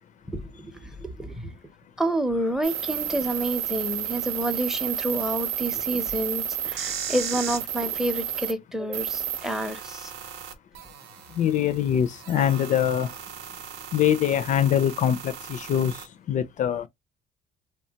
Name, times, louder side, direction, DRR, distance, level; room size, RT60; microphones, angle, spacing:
voice 1, 0.3-1.6 2.0-10.1, right 1 dB, 5° right, 0.6 m, -29 dB
sound 1, 2.6-8.5 8.9-16.1, right 9 dB, 85° right, 0.7 m, -33 dB
voice 2, 11.4-13.1 13.9-15.9 16.3-16.8, left 9 dB, 45° left, 0.4 m, -23 dB
3.1 x 2.2 x 2.7 m
cardioid pair, 110°, 17 cm